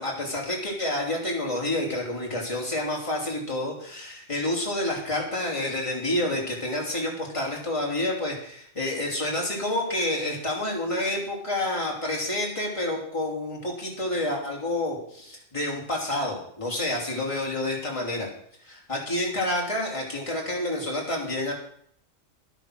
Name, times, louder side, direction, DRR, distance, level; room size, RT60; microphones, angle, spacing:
voice 1, 0.0-18.3 18.6-21.5, left 1 dB, 25° left, -2 dB, 3.4 m, -29 dB
11.0 x 9.9 x 6.4 m, 0.65 s
omnidirectional pair, 1.3 m